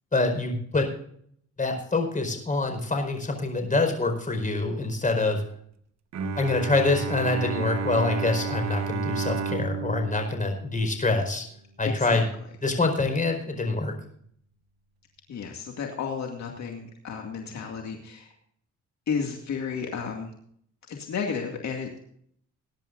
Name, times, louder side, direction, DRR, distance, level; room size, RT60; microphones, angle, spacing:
voice 1, 0.1-0.9 1.6-5.4 6.4-11.4 11.8-12.2 12.6-13.9, left 3 dB, 25° left, 4 dB, 4.8 m, -25 dB
Bowed string instrument, 6.1-11.4, right 4 dB, 60° right, 1.2 m, -32 dB
voice 2, 11.8-12.3 15.3-18.3 19.1-20.3 20.9-22.0, left 6 dB, 65° left, 2 dB, 2.2 m, -32 dB
21.5 x 10.5 x 2.6 m, 0.65 s
cardioid pair, 90°, 30 cm